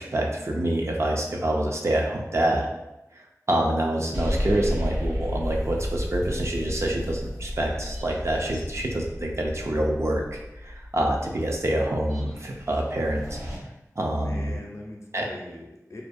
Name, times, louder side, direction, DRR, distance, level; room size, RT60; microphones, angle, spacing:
voice 1, 0.0-2.7 3.1-3.2 3.5-13.4 14.0-14.6 15.1-15.3, right 1 dB, 50° right, 0 dB, 0.4 m, -26 dB
sound 1, 4.1-13.6, left 1 dB, 70° right, 0.9 m, -33 dB
voice 2, 14.1-16.0, left 1 dB, 55° left, 0 dB, 0.5 m, -41 dB
2.5 x 2.2 x 2.5 m, 0.95 s
wide cardioid pair, 55°, 6 cm